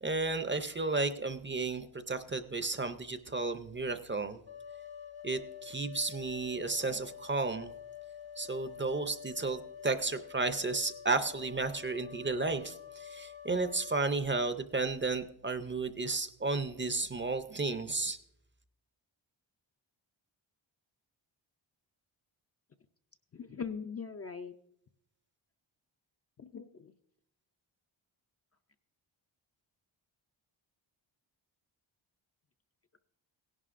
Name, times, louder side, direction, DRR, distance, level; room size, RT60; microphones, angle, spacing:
voice 1, 0.0-4.4 5.2-7.7 8.4-18.2, right 3 dB, 25° right, 10 dB, 0.5 m, -33 dB
sound 1, 4.5-14.2, left 8 dB, 70° left, 1.2 m, -48 dB
voice 2, 23.3-24.5 26.4-26.9, left 6 dB, 35° left, 7 dB, 0.4 m, -41 dB
17.0 x 11.0 x 2.5 m, 0.74 s
wide cardioid pair, 145°, 47 cm